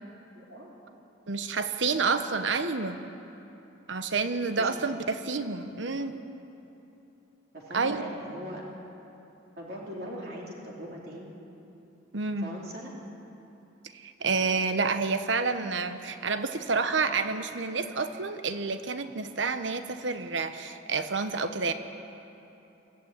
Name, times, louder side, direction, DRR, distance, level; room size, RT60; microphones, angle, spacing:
voice 1, 0.3-1.0 4.6-4.7 5.6-6.2 7.5-8.6 9.6-11.3 12.4-12.9, equal, 55° right, -3 dB, 3.0 m, -41 dB
voice 2, 1.3-3.0 3.9-6.2 7.7-8.0 12.1-12.5 13.9-21.7, right 4 dB, 70° right, 9 dB, 1.0 m, -29 dB
23.0 x 14.5 x 9.0 m, 3.0 s
head